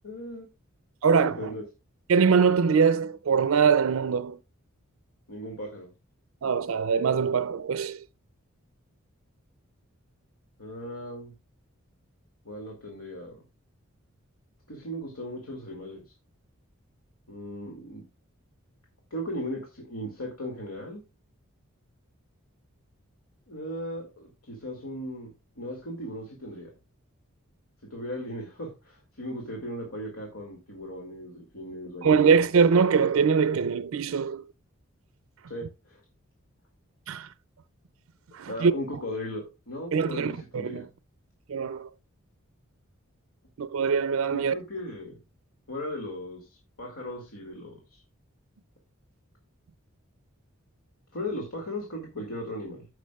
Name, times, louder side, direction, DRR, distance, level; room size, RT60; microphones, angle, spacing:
voice 1, 0.0-0.5 1.0-1.6 5.3-5.9 10.6-11.3 12.4-13.4 14.7-16.0 17.3-18.0 19.1-21.0 23.5-25.3 25.6-26.7 27.9-32.4 35.5-36.0 38.5-40.9 44.3-45.2 45.7-48.0 51.1-52.9, left 1 dB, 80° left, 2.2 m, -37 dB
voice 2, 1.0-1.5 2.1-4.4 6.4-8.0 32.0-34.4 37.1-37.3 38.3-38.7 39.9-40.9 41.5-41.9 43.6-44.5, right 6 dB, 70° right, 0.4 m, -23 dB
15.0 x 5.9 x 2.3 m
head